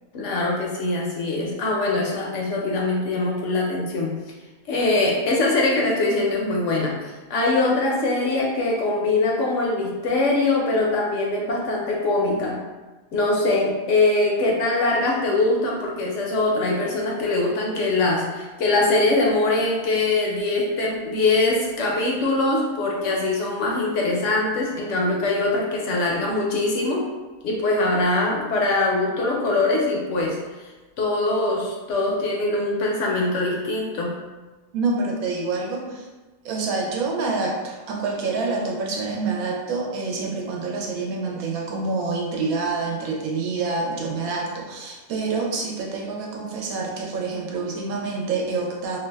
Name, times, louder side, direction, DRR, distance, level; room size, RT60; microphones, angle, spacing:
voice 1, 0.1-4.1 4.7-12.6 13.1-27.0 27.4-30.4 31.0-34.1, left 2 dB, 65° left, -2 dB, 0.8 m, -22 dB
voice 2, 34.7-36.1 36.4-49.0, right 3 dB, 85° right, 0 dB, 1.1 m, -27 dB
2.6 x 2.2 x 3.2 m, 1.2 s
omnidirectional pair, 1.5 m